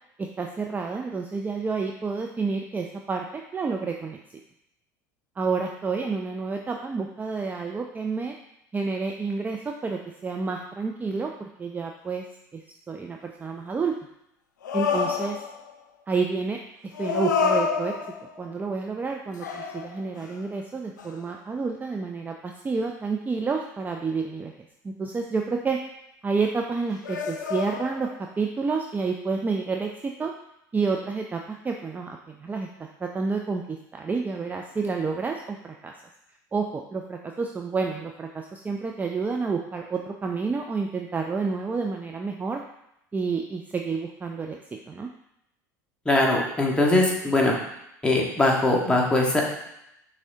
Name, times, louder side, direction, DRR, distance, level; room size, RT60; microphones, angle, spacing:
voice 1, 0.2-4.2 5.4-8.4 8.7-12.2 12.5-14.0 14.7-15.4 16.1-16.6 16.8-17.9 18.4-24.5 24.8-25.8 26.2-29.9 30.2-30.3 30.7-32.7 33.0-35.9 36.5-42.6 43.1-44.6 44.9-45.1, right 4 dB, 20° right, 2 dB, 0.4 m, -29 dB
sound 1, 14.6-15.7 16.9-18.5 19.4-20.4 21.0-21.2 27.0-28.2, left 6 dB, 85° left, 0.5 m, -28 dB
voice 2, 46.1-47.5 48.0-49.4, left 2 dB, 10° left, -2 dB, 1.3 m, -21 dB
6.1 x 3.3 x 2.7 m, 0.82 s
hypercardioid pair, 80°, 10 cm